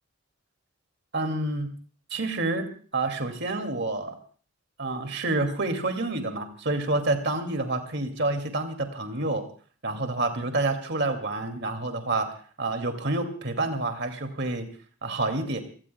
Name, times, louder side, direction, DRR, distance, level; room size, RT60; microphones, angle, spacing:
voice 1, 1.1-1.7 2.1-4.1 4.8-9.4 9.8-12.3 12.6-14.7 15.0-15.6, right 2 dB, 50° right, 6 dB, 2.3 m, -28 dB
29.0 x 18.0 x 2.2 m, 0.42 s
head